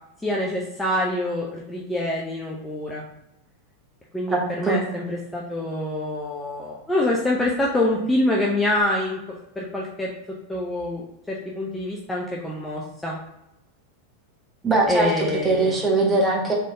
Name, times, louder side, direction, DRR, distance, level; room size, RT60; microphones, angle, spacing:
voice 1, 0.2-3.0 4.1-9.2 9.6-10.1 10.5-13.2 14.9-15.7, left 1 dB, 10° left, -3 dB, 0.7 m, -25 dB
voice 2, 4.3-4.8 14.6-15.1 15.4-16.5, right 3 dB, 15° right, -2 dB, 1.2 m, -21 dB
3.7 x 3.7 x 3.6 m, 0.88 s
figure-of-eight pair, 90°, 0 cm